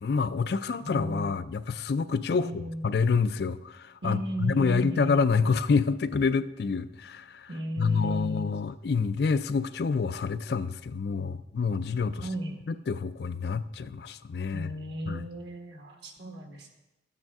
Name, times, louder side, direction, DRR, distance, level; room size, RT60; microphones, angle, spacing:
voice 1, 0.0-7.5 7.8-12.3 12.7-14.7 15.1-15.3, left 5 dB, 55° left, 13 dB, 0.4 m, -27 dB
voice 2, 0.8-1.4 2.3-2.9 4.0-5.2 7.5-8.6 12.2-12.5 14.5-16.7, right 1 dB, 65° right, 3 dB, 1.5 m, -35 dB
13.0 x 9.0 x 3.6 m, 0.97 s
head